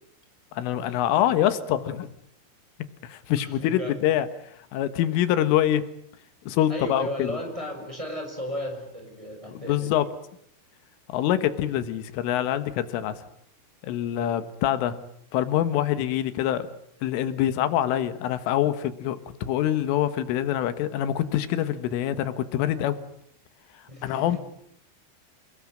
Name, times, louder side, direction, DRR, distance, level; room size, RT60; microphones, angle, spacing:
voice 1, 0.5-2.1 3.0-4.3 4.7-5.8 6.5-7.4 9.5-10.1 11.1-13.2 13.8-15.0 15.3-16.7 17.0-23.0 24.0-24.4, left 11 dB, 85° left, 12 dB, 3.9 m, -25 dB
voice 2, 3.4-4.0 6.7-9.9 14.1-14.3 23.9-24.4, equal, 5° right, 3 dB, 5.9 m, -35 dB
29.0 x 20.0 x 8.8 m, 0.69 s
omnidirectional pair, 5.6 m